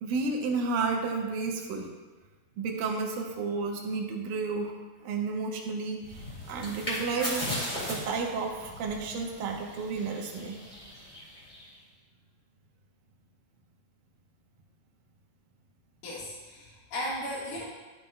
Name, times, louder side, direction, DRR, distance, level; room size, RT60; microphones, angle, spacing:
voice 1, 0.0-1.9 2.6-4.8 5.0-7.5 7.9-10.6, right 4 dB, 75° right, 1 dB, 2.4 m, -32 dB
sound 1, 6.0-11.8, equal, 15° left, 1.9 m, -38 dB
voice 2, 16.0-17.6, equal, 70° left, -9 dB, 3.2 m, -36 dB
12.0 x 7.2 x 2.2 m, 1.3 s
omnidirectional pair, 4.5 m